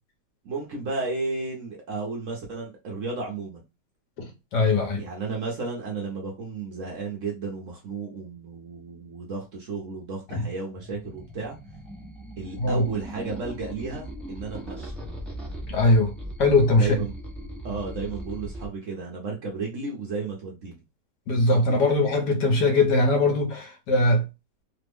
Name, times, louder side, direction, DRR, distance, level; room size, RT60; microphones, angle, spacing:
voice 1, 0.4-3.6 5.0-11.6 12.4-14.9 16.7-17.1 17.6-20.8 21.7-22.0, right 4 dB, 60° right, 0.9 m, -33 dB
voice 2, 4.5-5.0 10.3-10.4 12.6-12.8 15.7-16.1 16.4-16.9 21.3-24.2, left 2 dB, 75° left, 1.4 m, -21 dB
sound 1, 10.8-18.7, equal, ahead, 0.3 m, -39 dB
3.3 x 2.1 x 3.4 m
omnidirectional pair, 1.9 m